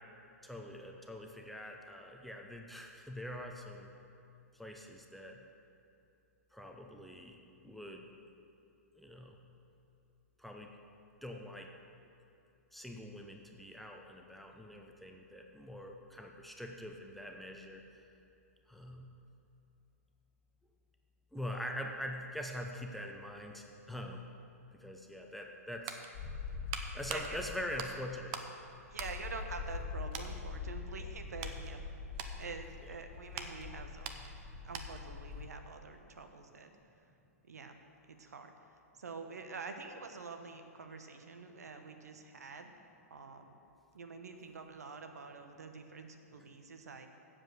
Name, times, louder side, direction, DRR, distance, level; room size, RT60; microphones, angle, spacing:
voice 1, 0.4-3.9 4.5-5.4 6.5-7.4 7.6-8.1 8.9-9.4 10.4-10.7 11.2-11.7 12.7-17.9 18.7-19.0 21.3-24.3 24.7-26.0 26.9-28.3, left 1 dB, ahead, 2 dB, 0.7 m, -44 dB
sound 1, 25.5-28.6 28.9-29.8 30.1-30.4 30.9-35.2 35.4-35.6, right 7 dB, 40° right, 0.8 m, -45 dB
sound 2, 26.1-35.5, left 5 dB, 55° left, 1.8 m, -44 dB
voice 2, 28.9-31.8 32.4-34.1 34.6-36.7 37.5-37.7 38.1-38.5 39.0-42.7 43.1-43.6 43.9-47.1, right 4 dB, 80° right, 6 dB, 1.0 m, -47 dB
7.6 x 7.4 x 7.9 m, 2.7 s
hypercardioid pair, 120°, 9 cm